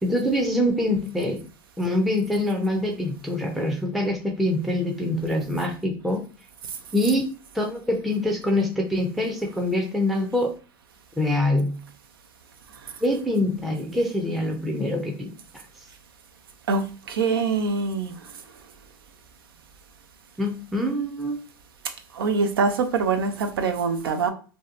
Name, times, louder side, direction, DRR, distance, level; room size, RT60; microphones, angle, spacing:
voice 1, 0.0-1.4 1.8-6.2 6.9-7.3 7.5-10.5 11.2-11.8 13.0-15.3 15.8-15.9 20.4-21.4, left 1 dB, ahead, 1 dB, 0.5 m, -24 dB
voice 2, 16.7-18.2 22.1-24.3, right 4 dB, 80° right, 7 dB, 0.4 m, -24 dB
2.7 x 2.2 x 2.4 m, 0.37 s
hypercardioid pair, 90°, 12 cm